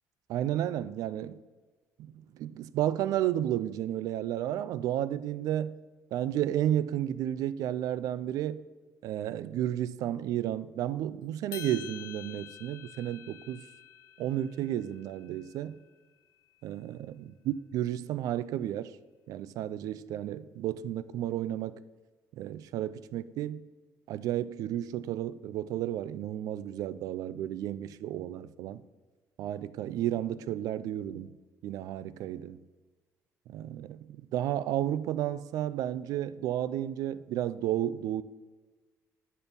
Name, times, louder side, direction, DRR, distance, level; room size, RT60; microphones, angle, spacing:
voice 1, 0.3-1.4 2.1-5.8 6.1-8.6 9.0-13.6 14.2-15.8 16.6-18.9 19.3-21.8 22.4-23.6 24.1-28.8 29.4-31.4 31.6-32.6 33.5-38.2, right 12 dB, 75° right, 0.4 m, -32 dB
sound 1, 11.5-15.9, left 10 dB, 85° left, 0.6 m, -48 dB
8.5 x 4.5 x 5.2 m
cardioid pair, 160°, 6 cm